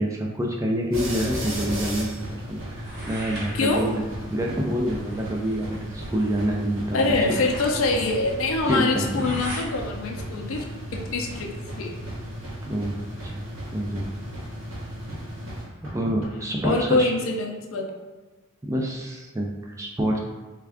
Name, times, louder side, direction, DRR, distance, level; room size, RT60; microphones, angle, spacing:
voice 1, 0.0-2.1 2.5-4.0 4.3-7.0 8.7-9.3 12.7-13.4 13.7-14.0 15.8-17.1 18.6-20.2, equal, 15° right, -1 dB, 0.4 m, -27 dB
sound 1, 0.9-16.3, equal, 80° right, 1.0 m, -35 dB
sound 2, 2.8-9.7, right 1 dB, 50° right, 0.9 m, -40 dB
voice 2, 3.5-3.9 6.9-10.6 10.9-12.0 16.6-17.9, left 2 dB, 85° left, 1 dB, 0.5 m, -24 dB
3.4 x 2.3 x 3.4 m, 1.3 s
head